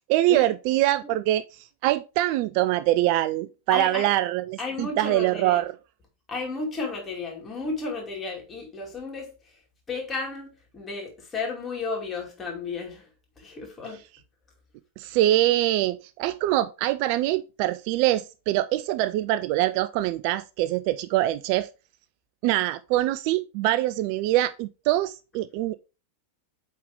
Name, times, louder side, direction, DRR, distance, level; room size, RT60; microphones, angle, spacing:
voice 1, 0.1-5.7 15.0-21.7 22.4-25.8, right 15 dB, 45° right, 0.3 m, -24 dB
voice 2, 3.7-4.1 4.6-5.6 6.3-9.6 9.9-13.1 13.4-14.0, left 4 dB, 20° left, 2.5 m, -33 dB
8.4 x 3.7 x 3.6 m
figure-of-eight pair, 90°, 0 cm